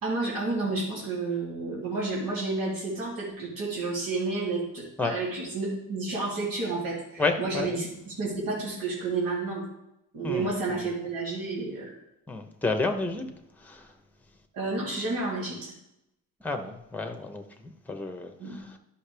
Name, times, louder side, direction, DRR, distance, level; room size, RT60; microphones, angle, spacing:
voice 1, 0.0-9.6 10.1-12.0 14.5-15.7 18.4-18.8, right 3 dB, 90° right, -6 dB, 3.0 m, -31 dB
voice 2, 7.2-7.8 10.2-10.5 12.3-13.2 13.6-13.9 16.4-18.6, left 3 dB, 5° left, 5 dB, 0.9 m, -30 dB
11.5 x 5.8 x 3.4 m, 0.84 s
wide cardioid pair, 125°, 33 cm